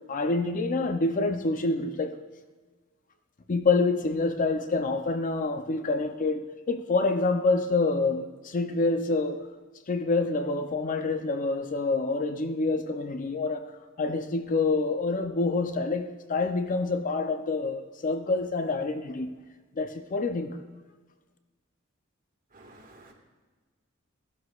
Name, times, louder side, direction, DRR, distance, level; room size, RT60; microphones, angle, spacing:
voice 1, 0.1-2.1 3.5-9.5 9.9-13.7 14.0-19.3 19.8-20.6, left 3 dB, 40° left, 0.5 m, -27 dB
voice 2, 22.5-23.1, right 2 dB, 40° right, 1.7 m, -52 dB
14.5 x 11.5 x 2.4 m
head